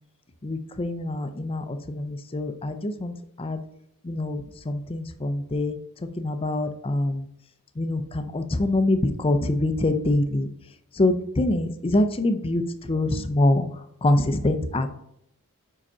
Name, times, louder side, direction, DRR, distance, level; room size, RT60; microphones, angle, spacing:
voice 1, 0.4-3.6 4.1-4.4 4.7-5.8 6.2-7.3 7.8-10.5 11.0-12.6 12.9-13.6 14.0-14.9, left 1 dB, 25° left, 9 dB, 0.5 m, -24 dB
5.0 x 4.9 x 5.4 m, 0.73 s
head